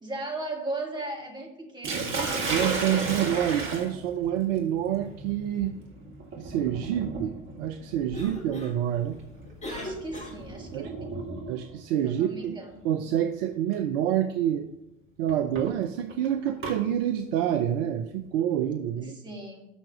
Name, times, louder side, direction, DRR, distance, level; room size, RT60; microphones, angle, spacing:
voice 1, 0.0-2.3 9.7-11.2 12.0-12.9 19.0-19.7, right 2 dB, 10° right, 0 dB, 2.1 m, -37 dB
Sink (filling or washing), 1.8-11.8 12.9-13.2 13.7-13.8 15.3-16.8, right 3 dB, 30° right, 2.0 m, -34 dB
voice 2, 2.5-5.7 6.4-9.2 10.7-10.9 11.5-12.5 12.8-14.6 15.2-19.2, right 10 dB, 50° right, 8 dB, 0.6 m, -27 dB
Cough, 7.9-10.8, left 1 dB, 20° left, 1.7 m, -41 dB
7.0 x 5.9 x 6.2 m, 0.94 s
figure-of-eight pair, 70°, 38 cm